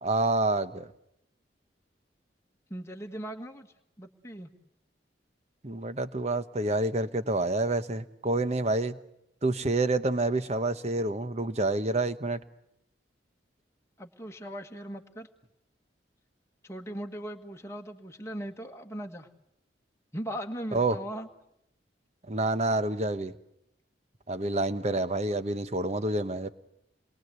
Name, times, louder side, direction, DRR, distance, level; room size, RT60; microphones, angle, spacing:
voice 1, 0.0-0.9 5.6-9.0 9.4-12.4 20.7-21.0 22.3-23.3 24.3-26.5, right 2 dB, 35° right, 12 dB, 1.0 m, -28 dB
voice 2, 2.7-3.7 4.0-4.5 14.0-15.3 16.6-19.3 20.1-21.3, equal, 15° left, 3 dB, 1.6 m, -39 dB
28.0 x 22.0 x 8.1 m, 0.82 s
head